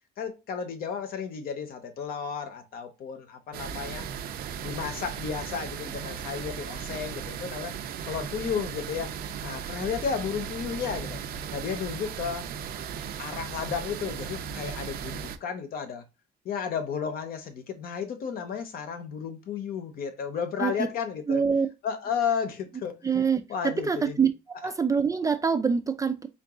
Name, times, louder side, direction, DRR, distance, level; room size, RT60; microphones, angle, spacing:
voice 1, 0.2-4.1 4.6-7.7 8.1-9.1 9.4-11.2 11.5-12.5 13.2-16.0 16.4-21.4 21.8-23.0 23.5-24.2, left 7 dB, 65° left, 0.8 m, -33 dB
sound 1, 3.5-15.4, right 7 dB, 65° right, 0.6 m, -36 dB
voice 2, 21.3-21.7 23.0-23.4 23.8-24.3 24.6-26.3, right 6 dB, 20° right, 0.4 m, -24 dB
3.8 x 2.5 x 3.6 m
cardioid pair, 110°, 17 cm